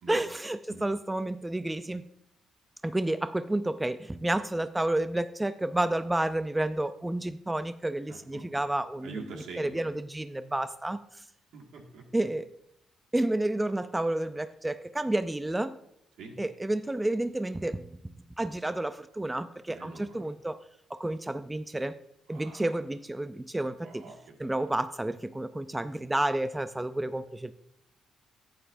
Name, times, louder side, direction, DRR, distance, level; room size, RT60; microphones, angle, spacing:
voice 1, 0.1-2.0 2.8-9.2 9.6-11.0 12.1-12.5 13.1-15.8 16.4-17.9 18.4-20.6 20.9-22.0 22.3-24.1 24.4-27.5, right 1 dB, 10° right, 12 dB, 0.4 m, -30 dB
voice 2, 8.1-8.6 9.0-9.9 11.5-12.0 16.2-16.3 19.7-20.3 22.3-22.7 23.8-24.5, right 3 dB, 80° right, 1 dB, 1.8 m, -45 dB
11.0 x 9.0 x 2.6 m, 0.77 s
cardioid pair, 90°, 0 cm